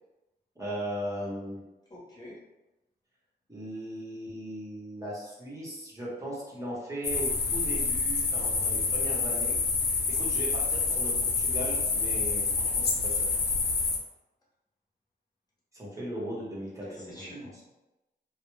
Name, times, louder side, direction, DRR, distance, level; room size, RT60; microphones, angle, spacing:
voice 1, 0.6-1.6 3.5-9.6 9.8-13.3 15.7-17.6, right 1 dB, 20° right, -7 dB, 0.8 m, -38 dB
voice 2, 1.9-2.4 16.8-17.6, equal, 25° left, -6 dB, 0.8 m, -46 dB
sound 1, 7.0-14.0, left 4 dB, 75° left, 0.4 m, -27 dB
2.2 x 2.0 x 3.1 m, 1.0 s
wide cardioid pair, 170°, 17 cm